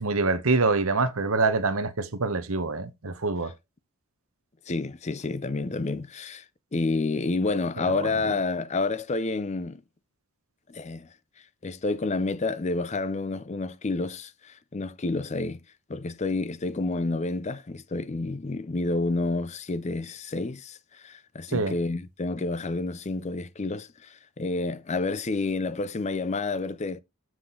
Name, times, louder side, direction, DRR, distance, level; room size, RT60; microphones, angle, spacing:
voice 1, 0.0-3.5 21.5-21.7, right 3 dB, 65° right, 1.0 m, -25 dB
voice 2, 4.7-6.4 6.7-9.8 10.7-11.1 11.6-15.6 15.9-27.0, left 3 dB, 30° left, 0.5 m, -29 dB
7.6 x 6.1 x 3.8 m
head